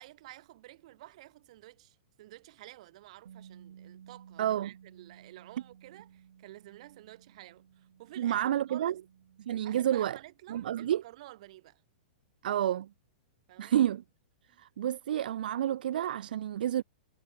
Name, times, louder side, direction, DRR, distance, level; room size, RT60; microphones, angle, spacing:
voice 1, 0.0-9.0 9.6-11.8 13.5-13.7 14.5-14.6, right 16 dB, 40° right, 1.9 m, -51 dB
Bass guitar, 3.2-9.5, right 9 dB, 85° right, 5.8 m, -56 dB
voice 2, 4.4-4.7 8.2-8.9 9.5-10.2 10.5-11.0 12.4-12.9 13.6-14.0 14.6-16.8, right 11 dB, 60° right, 0.5 m, -29 dB
hypercardioid pair, 175°, 5 cm